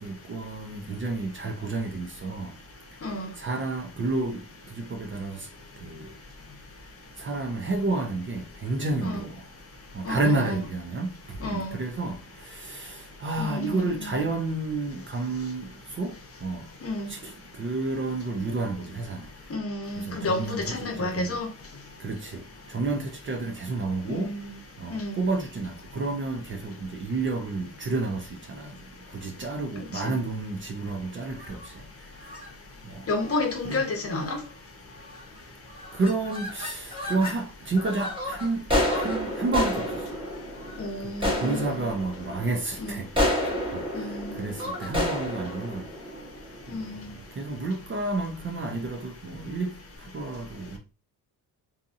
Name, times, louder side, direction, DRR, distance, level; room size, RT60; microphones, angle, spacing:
voice 1, 0.0-2.5 3.4-4.4 4.8-5.4 5.8-6.1 7.2-9.3 9.9-11.1 11.5-12.2 12.5-15.7 16.0-16.1 16.4-16.6 17.1-17.3 17.6-19.3 20.1-21.4 22.0-22.4 22.7-24.3 24.8-28.2 28.5-28.7 29.1-31.6 32.9-33.0 33.6-33.8 35.9-38.6 38.9-39.9 41.4-43.1 43.7-43.9 44.4-45.8 47.4-49.7 50.1-50.8, right 3 dB, 30° right, 0.5 m, -30 dB
voice 2, 10.0-10.6 11.4-11.8 13.4-14.1 16.8-17.1 19.5-21.5 24.1-24.5 24.9-25.2 30.0-30.2 33.1-34.4 40.8-41.8 42.8-43.0 43.9-44.5 46.7-47.1, left 2 dB, 35° left, 0.8 m, -31 dB
sound 1, 31.3-31.7 32.2-32.5 33.2-33.4 33.7-33.8 34.1-34.5 35.1-35.4 35.7-37.4 37.8-46.9, left 1 dB, 15° right, 1.0 m, -31 dB
2.7 x 2.6 x 2.5 m
cardioid pair, 125°, 38 cm